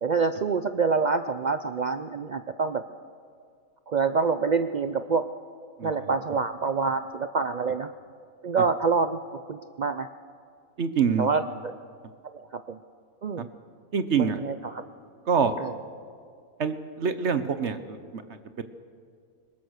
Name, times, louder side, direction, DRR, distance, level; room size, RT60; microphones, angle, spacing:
voice 1, 0.0-2.8 3.9-5.2 5.8-7.9 8.4-9.2 9.5-10.1 11.2-11.7 12.3-12.8 13.2-13.5 14.2-14.8 15.6-15.7, right 5 dB, 80° right, 10 dB, 0.4 m, -26 dB
voice 2, 5.8-6.1 10.8-11.3 13.9-14.4 15.3-15.5 16.6-18.6, right 6 dB, 55° right, 10 dB, 1.2 m, -26 dB
22.5 x 20.0 x 6.5 m, 2.2 s
omnidirectional pair, 1.6 m